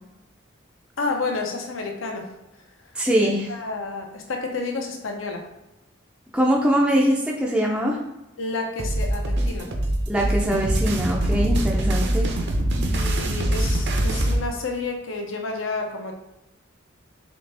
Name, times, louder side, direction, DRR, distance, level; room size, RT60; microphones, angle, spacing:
voice 1, 1.0-2.3 3.2-5.5 8.4-9.7 12.9-16.1, left 3 dB, 75° left, 2 dB, 0.7 m, -30 dB
voice 2, 3.0-3.5 6.3-8.0 10.1-12.3, equal, 5° right, -3 dB, 0.4 m, -22 dB
sound 1, 8.8-14.4, right 1 dB, 60° right, 0.6 m, -23 dB
4.1 x 3.3 x 3.3 m, 0.94 s
head